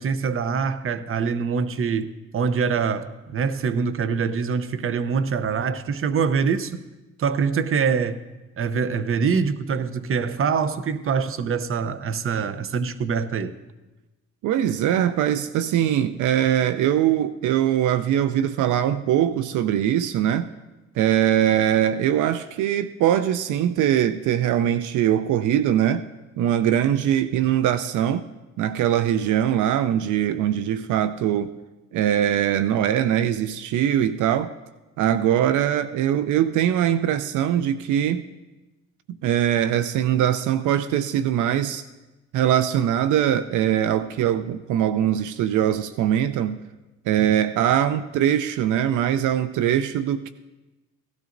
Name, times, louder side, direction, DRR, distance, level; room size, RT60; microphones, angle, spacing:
voice 1, 0.0-6.8 7.2-8.2 8.6-13.5, right 6 dB, 45° right, 0.7 m, -24 dB
voice 2, 14.4-20.5 21.0-26.1 26.4-28.2 28.6-31.5 31.9-34.5 35.0-38.2 39.1-41.8 42.3-46.6 47.1-50.3, right 10 dB, 80° right, 0.5 m, -22 dB
17.0 x 12.5 x 2.6 m
cardioid pair, 90°, 30 cm